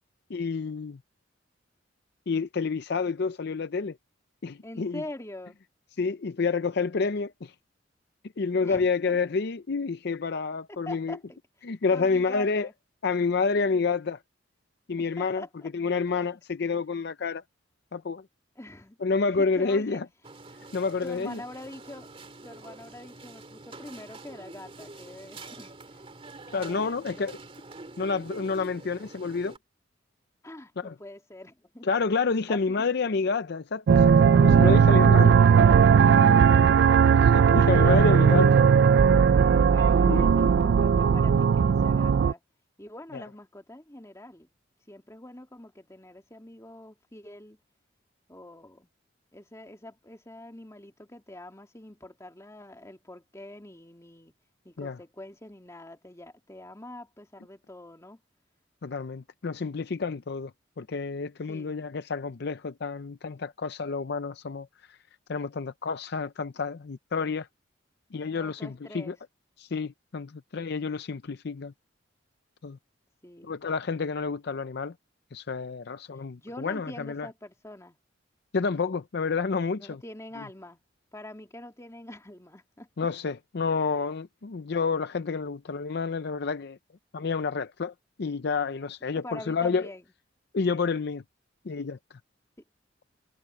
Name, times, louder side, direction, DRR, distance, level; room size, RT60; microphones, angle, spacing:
voice 1, 0.3-1.0 2.3-4.0 4.4-5.0 6.0-7.5 8.4-11.2 11.6-12.7 13.0-14.2 14.9-15.4 15.7-17.4 17.9-18.2 19.0-20.1 20.7-21.4 26.5-27.4 28.0-29.6 30.8-30.9 31.8-35.8 37.2-38.5 40.1-40.3 43.1-43.2 54.8-55.0 58.8-60.5 60.8-65.0 65.3-67.5 68.1-69.2 69.6-71.7 72.6-72.8 73.4-74.9 75.3-77.3 78.5-80.0 83.0-86.8 87.1-89.9 90.5-91.2 91.6-92.0, left 4 dB, 60° left, 0.5 m, -29 dB
voice 2, 4.6-5.6 8.6-9.2 10.7-11.4 11.9-12.7 15.2-15.7 18.6-19.0 19.3-20.0 21.0-22.1 22.4-26.0 26.5-27.3 28.6-28.8 30.4-31.9 32.5-32.9 36.5-37.1 39.7-42.4 42.8-44.5 44.9-47.6 48.3-48.9 49.3-54.3 54.6-58.2 61.5-61.9 68.4-69.2 73.2-73.6 76.4-78.0 79.8-80.8 81.1-83.1 89.1-90.0, left 1 dB, 15° left, 2.5 m, -44 dB
sound 1, 20.2-29.6, right 2 dB, 30° right, 2.8 m, -46 dB
sound 2, 33.9-42.3, right 6 dB, 60° right, 0.3 m, -18 dB
head